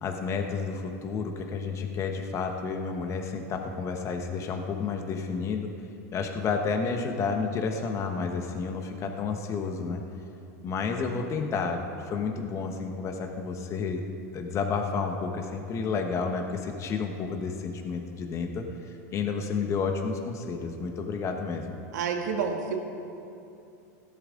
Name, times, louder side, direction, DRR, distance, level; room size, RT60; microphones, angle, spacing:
voice 1, 0.0-5.7 6.1-10.0 10.6-11.8 12.0-14.0 14.3-21.8, left 5 dB, 30° left, 4 dB, 1.2 m, -31 dB
voice 2, 21.9-22.8, right 6 dB, 80° right, 3 dB, 1.7 m, -29 dB
17.5 x 12.0 x 3.8 m, 2.7 s
supercardioid pair, 125°, 9 cm